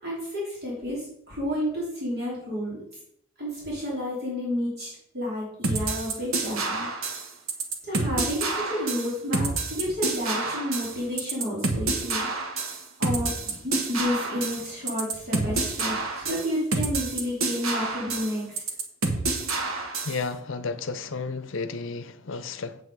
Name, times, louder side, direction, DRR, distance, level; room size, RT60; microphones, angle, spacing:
voice 1, 0.0-2.8 3.4-6.9 7.8-12.5 13.0-18.5, left 1 dB, 50° right, 3.2 m, -31 dB
sound 1, 5.6-20.2, right 3 dB, 80° right, 1.4 m, -28 dB
voice 2, 20.0-22.8, left 4 dB, 60° left, 0.7 m, -32 dB
7.9 x 7.7 x 4.7 m
head